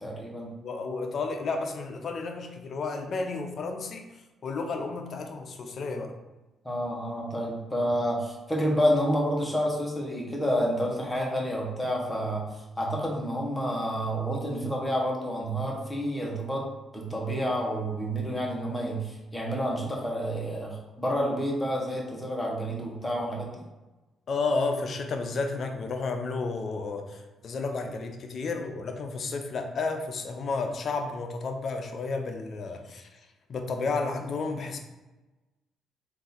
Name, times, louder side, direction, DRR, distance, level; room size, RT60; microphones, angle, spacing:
voice 1, 0.0-0.5 6.6-23.6, equal, 10° left, -2 dB, 1.1 m, -29 dB
voice 2, 0.6-6.1 24.3-34.8, left 3 dB, 55° left, 5 dB, 0.6 m, -32 dB
3.7 x 2.6 x 4.0 m, 1.1 s
cardioid pair, 90°, 0 cm